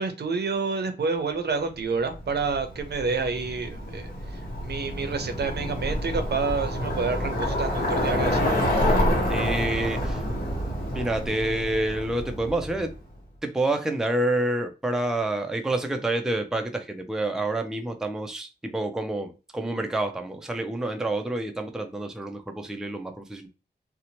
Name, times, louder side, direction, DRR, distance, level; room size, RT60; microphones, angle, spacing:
voice 1, 0.0-8.5, right 4 dB, 65° right, 0.6 m, -29 dB
Bicycle, 2.1-13.0, equal, 55° left, 1.0 m, -28 dB
voice 2, 9.3-10.2 10.9-12.9 13.4-23.5, right 2 dB, 5° right, 0.4 m, -28 dB
2.7 x 2.1 x 2.8 m
wide cardioid pair, 80°, 18 cm